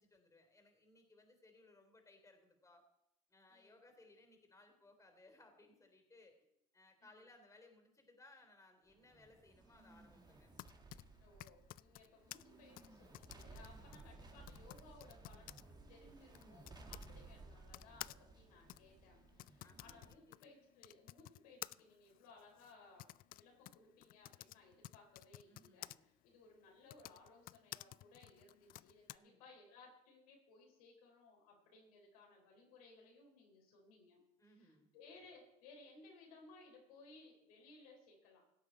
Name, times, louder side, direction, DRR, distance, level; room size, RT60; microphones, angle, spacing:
voice 1, 0.0-2.8 3.3-6.3 6.7-10.5 11.9-12.2 13.8-14.2 16.9-17.3 19.6-20.5 25.5-26.1 29.2-29.4 34.4-34.9, left 2 dB, 15° left, 5 dB, 3.6 m, -65 dB
sound 1, 8.9-20.1, right 3 dB, 20° right, 2.0 m, -59 dB
Typing, 10.3-17.1 17.7-26.0 26.8-29.2, left 16 dB, 55° left, 0.4 m, -54 dB
voice 2, 11.2-23.1 23.4-38.4, left 3 dB, 80° left, 0 dB, 3.8 m, -62 dB
17.0 x 8.3 x 4.5 m, 0.81 s
hypercardioid pair, 70°, 18 cm